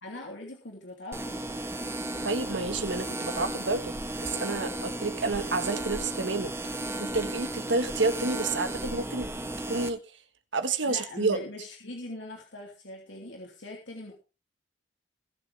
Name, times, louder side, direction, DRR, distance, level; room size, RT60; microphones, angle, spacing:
voice 1, 0.0-1.4 10.8-14.1, left 1 dB, 85° left, 3.0 m, -41 dB
sound 1, 1.1-9.9, right 1 dB, 15° right, 1.3 m, -34 dB
voice 2, 2.2-6.7 7.0-9.3 9.7-10.0 10.5-11.4, right 3 dB, 85° right, 1.6 m, -29 dB
22.0 x 7.5 x 3.5 m
head